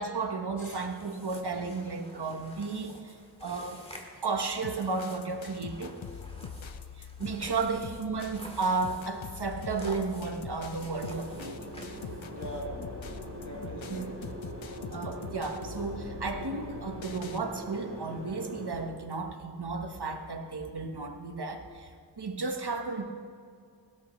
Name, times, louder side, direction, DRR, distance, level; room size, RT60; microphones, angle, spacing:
voice 1, 0.0-3.1 3.4-3.9 4.2-6.0 7.2-11.7 13.9-14.1 14.9-21.9 22.2-23.0, right 4 dB, 60° right, 4 dB, 1.4 m, -33 dB
sound 1, 0.7-12.4, equal, 15° left, 2.1 m, -50 dB
sound 2, 4.6-17.4, left 6 dB, 85° left, 0.8 m, -44 dB
sound 3, 10.9-18.9, right 1 dB, 35° right, 2.9 m, -42 dB
voice 2, 12.3-13.0 13.4-14.2, right 1 dB, 40° left, -3 dB, 3.5 m, -42 dB
20.0 x 16.5 x 3.2 m, 2.3 s
wide cardioid pair, 60°, 45 cm